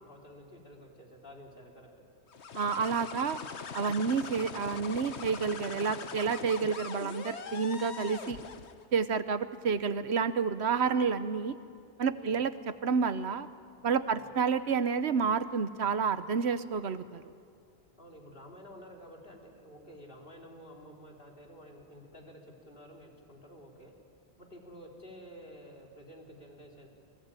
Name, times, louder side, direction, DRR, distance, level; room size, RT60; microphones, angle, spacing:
voice 1, 0.0-1.9 12.1-12.4 14.1-14.3 18.0-23.9 24.4-26.9, equal, 55° left, 0 dB, 4.0 m, -51 dB
sound 1, 2.3-8.8, left 6 dB, 80° left, 1.4 m, -42 dB
voice 2, 2.5-3.4 3.7-8.4 8.9-11.6 12.0-12.5 12.8-13.5 13.8-17.2, right 5 dB, 75° right, 13 dB, 1.2 m, -29 dB
29.0 x 20.5 x 9.1 m, 2.3 s
omnidirectional pair, 1.1 m